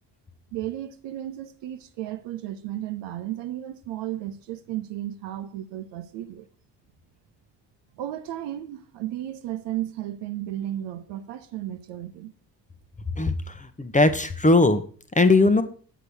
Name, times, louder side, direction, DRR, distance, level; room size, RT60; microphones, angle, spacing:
voice 1, 0.5-6.5 7.9-12.3, right 13 dB, 60° right, 1.0 m, -34 dB
voice 2, 13.1-14.8 15.1-15.6, left 2 dB, 15° left, 1.1 m, -19 dB
8.0 x 5.6 x 6.3 m
figure-of-eight pair, 40°, 50 cm